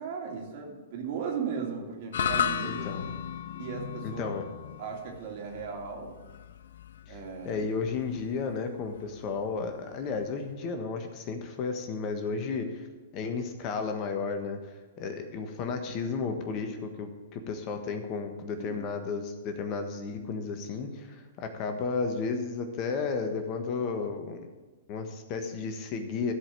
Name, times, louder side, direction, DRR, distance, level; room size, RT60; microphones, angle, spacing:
voice 1, 0.0-3.0 3.5-4.3 4.8-6.2 7.1-7.6 18.6-18.8, right 6 dB, 50° right, 0 dB, 2.9 m, -36 dB
sound 1, 2.1-10.5, left 9 dB, 65° left, 0.4 m, -36 dB
voice 2, 2.6-3.1 4.0-4.4 7.1-7.2 7.4-12.8 13.1-14.6 15.0-24.5 24.9-26.3, left 4 dB, 40° left, 6 dB, 1.4 m, -33 dB
14.5 x 5.2 x 7.4 m, 1.3 s
hypercardioid pair, 115°, 0 cm